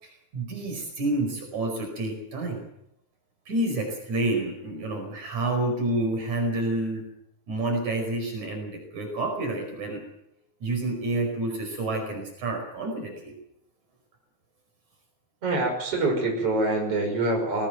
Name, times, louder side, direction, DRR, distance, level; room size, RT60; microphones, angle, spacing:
voice 1, 0.0-2.6 3.5-7.0 7.5-10.0 10.6-13.3, right 2 dB, 75° right, 3 dB, 6.5 m, -29 dB
voice 2, 15.4-17.7, right 2 dB, 50° right, 1 dB, 6.9 m, -25 dB
21.0 x 19.0 x 7.9 m, 0.79 s
omnidirectional pair, 3.4 m